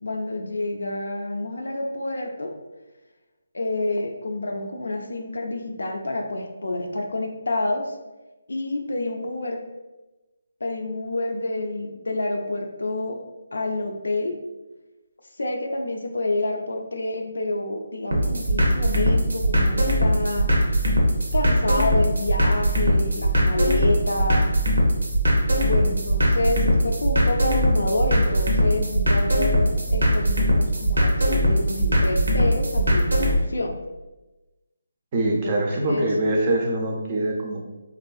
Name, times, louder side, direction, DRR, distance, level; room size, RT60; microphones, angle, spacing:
voice 1, 0.0-2.5 3.5-7.9 8.5-9.6 10.6-13.2 13.5-14.4 15.4-20.5 21.3-24.5 25.6-33.7 35.2-36.1, left 2 dB, 80° left, 3 dB, 0.4 m, -28 dB
sound 1, 18.1-33.4, equal, 85° right, 0.7 m, -21 dB
voice 2, 35.1-37.6, right 1 dB, 30° right, -1 dB, 0.4 m, -23 dB
2.5 x 2.3 x 2.3 m, 1.1 s
figure-of-eight pair, 160°, 0 cm